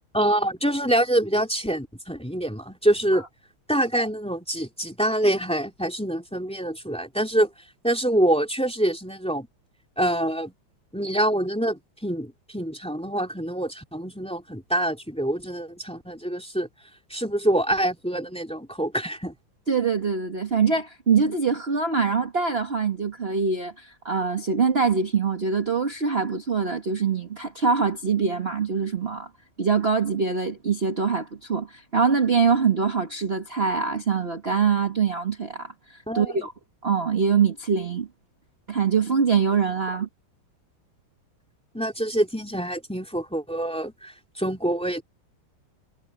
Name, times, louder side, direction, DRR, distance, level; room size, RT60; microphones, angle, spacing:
voice 1, 0.1-3.2 3.7-7.5 7.8-9.5 10.0-10.5 10.9-16.7 17.1-19.3 36.1-36.3 41.7-45.0, right 1 dB, 5° left, 2.9 m, -25 dB
voice 2, 19.7-29.3 29.6-36.5 36.8-38.1 38.7-40.1, right 5 dB, 30° right, 1.8 m, -24 dB
omnidirectional pair, 2.3 m